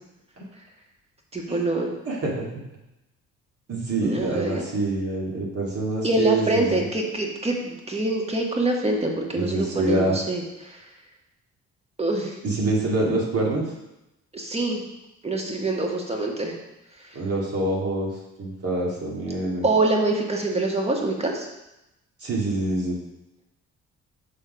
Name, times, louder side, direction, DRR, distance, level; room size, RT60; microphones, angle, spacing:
voice 1, 1.3-1.9 4.0-4.6 6.0-10.8 12.0-12.3 14.3-14.8 15.2-16.5 19.6-21.5, right 2 dB, 20° right, 0 dB, 1.5 m, -25 dB
voice 2, 2.0-2.5 3.7-6.8 9.3-10.2 12.4-13.6 17.1-18.1 18.4-19.7 22.2-23.0, right 2 dB, 50° right, -3 dB, 2.3 m, -25 dB
6.5 x 4.2 x 5.1 m, 0.92 s
cardioid pair, 90°, 30 cm